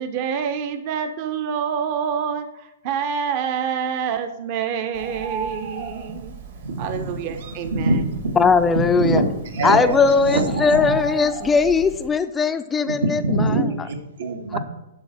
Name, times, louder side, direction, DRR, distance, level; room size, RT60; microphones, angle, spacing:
voice 1, 0.0-6.3 6.8-8.0, right 7 dB, 35° right, 9 dB, 0.6 m, -27 dB
Bird, 4.9-12.1, right 3 dB, 65° right, 1.9 m, -36 dB
voice 2, 6.6-7.2 7.7-8.4 8.7-10.8 12.8-14.6, right 2 dB, 85° right, 4 dB, 1.8 m, -24 dB
voice 3, 8.4-9.2 9.6-13.9 14.5-14.6, left 5 dB, 10° left, 10 dB, 0.3 m, -19 dB
11.0 x 4.0 x 6.4 m, 0.99 s
hypercardioid pair, 160°, 0 cm